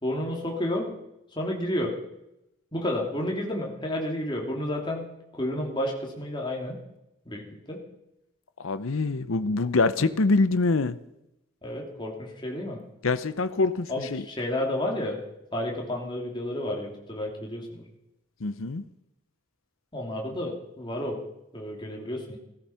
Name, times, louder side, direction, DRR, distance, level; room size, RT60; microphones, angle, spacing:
voice 1, 0.0-0.9 1.3-2.0 2.7-5.1 5.3-6.8 7.3-7.8 11.6-12.8 13.9-15.2 15.5-17.8 19.9-21.2 21.5-22.4, left 1 dB, 20° left, 0 dB, 2.7 m, -31 dB
voice 2, 8.6-11.0 13.0-14.2 18.4-18.8, left 3 dB, 85° left, 13 dB, 0.7 m, -25 dB
16.0 x 13.5 x 5.7 m, 0.87 s
head